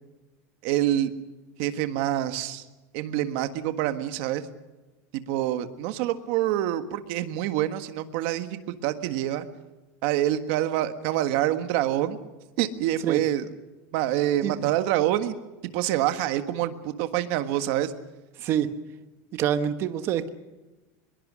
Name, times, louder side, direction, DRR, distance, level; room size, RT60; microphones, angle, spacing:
voice 1, 0.6-1.1 1.6-2.6 2.9-4.4 5.1-9.4 10.0-12.2 12.6-13.5 13.9-15.4 15.7-17.9, right 13 dB, 45° right, 9 dB, 1.6 m, -26 dB
voice 2, 18.4-18.7 19.3-20.3, right 10 dB, 30° right, 10 dB, 1.2 m, -26 dB
24.0 x 22.5 x 6.3 m, 1.1 s
supercardioid pair, 180°, 8 cm